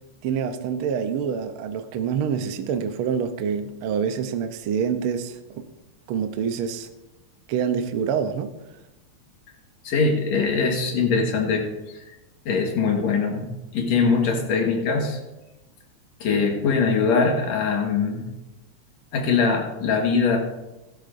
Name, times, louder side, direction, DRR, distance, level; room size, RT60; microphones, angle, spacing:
voice 1, 0.2-5.6 6.1-6.9 7.5-8.5, right 7 dB, 90° right, 8 dB, 1.1 m, -26 dB
voice 2, 9.8-12.0 12.5-15.2 16.2-18.3 19.1-20.4, left 4 dB, 70° left, 2 dB, 2.6 m, -22 dB
15.5 x 12.0 x 2.6 m, 1.0 s
omnidirectional pair, 3.4 m